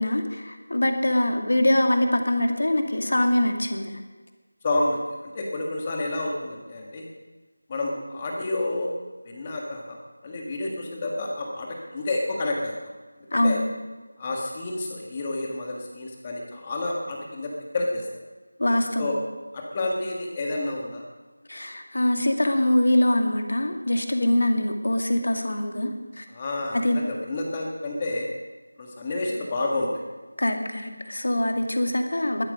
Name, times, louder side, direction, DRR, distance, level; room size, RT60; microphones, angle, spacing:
voice 1, 0.0-3.9 13.3-13.6 18.6-19.1 21.5-25.9 26.2-26.3 26.7-27.0 30.4-32.4, left 1 dB, 65° left, 4 dB, 2.2 m, -23 dB
voice 2, 4.6-7.1 7.7-8.9 9.2-10.0 10.2-12.8 13.3-13.6 14.2-18.1 19.0-19.1 19.5-21.0 26.3-28.3 28.8-30.0, left 2 dB, 15° left, 0 dB, 1.6 m, -29 dB
21.0 x 8.8 x 5.3 m, 1.3 s
figure-of-eight pair, 175°, 0 cm